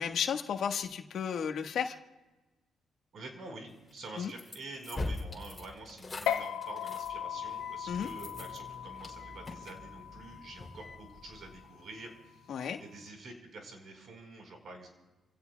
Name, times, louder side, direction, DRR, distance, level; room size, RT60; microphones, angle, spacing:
voice 1, 0.0-2.0 4.2-4.3 7.9-8.1 12.5-12.8, left 7 dB, 65° left, 4 dB, 1.4 m, -33 dB
voice 2, 3.1-14.9, right 2 dB, 60° right, 3 dB, 4.5 m, -47 dB
sound 1, 3.9-11.6, left 2 dB, 25° left, 3.2 m, -43 dB
sound 2, 6.3-13.1, left 9 dB, 90° left, 1.0 m, -39 dB
29.0 x 16.5 x 2.3 m, 1.1 s
cardioid pair, 90°, 0 cm